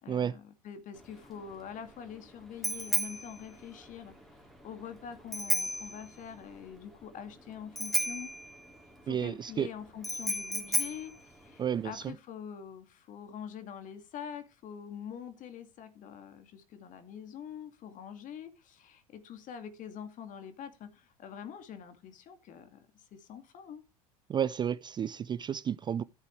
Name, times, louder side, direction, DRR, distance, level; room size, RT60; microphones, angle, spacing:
voice 1, 0.0-4.1 4.6-8.3 9.0-23.8, left 8 dB, 40° left, 2.4 m, -45 dB
Bicycle bell, 1.0-12.1, equal, ahead, 3.4 m, -35 dB
voice 2, 9.1-9.7 11.6-12.1 24.3-26.0, right 8 dB, 25° right, 0.4 m, -31 dB
14.0 x 8.1 x 3.2 m
figure-of-eight pair, 80°, 19 cm